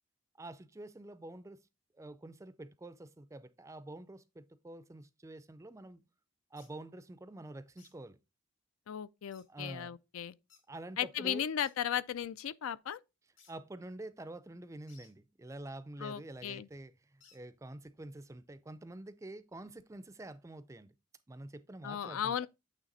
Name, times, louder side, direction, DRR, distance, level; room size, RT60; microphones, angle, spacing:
voice 1, 0.4-1.6 2.0-6.0 6.5-8.2 9.5-10.0 10.7-11.5 13.5-20.9 21.3-22.5, right 1 dB, 15° right, 0.4 m, -47 dB
sound 1, 6.6-6.7 7.8-7.9 9.3-9.5 10.5-10.6 11.6-11.8 13.4-13.5 14.9-15.1 17.2-17.4, left 6 dB, 65° left, 2.0 m, -62 dB
voice 2, 8.9-10.3 11.0-13.0 16.0-16.7 21.8-22.5, left 9 dB, 80° left, 0.4 m, -36 dB
9.0 x 3.3 x 4.0 m
head